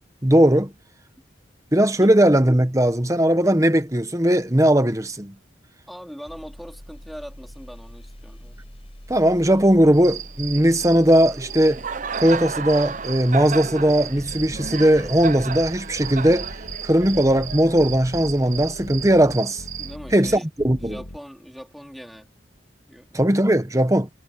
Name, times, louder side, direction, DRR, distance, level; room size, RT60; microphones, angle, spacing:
voice 1, 0.2-0.7 1.7-5.3 9.1-11.8 12.2-16.5 16.8-19.6 20.1-21.0 23.1-24.1, right 1 dB, 15° right, 1.2 m, -18 dB
voice 2, 5.9-8.6 19.8-20.5 20.8-22.3 22.9-23.2, equal, ahead, 3.3 m, -41 dB
sound 1, 6.2-19.4 19.7-19.9, equal, 30° left, 5.4 m, -43 dB
Cricket, 9.9-20.0, right 6 dB, 40° right, 0.6 m, -33 dB
sound 2, 14.2-21.2, left 1 dB, 65° left, 2.4 m, -39 dB
head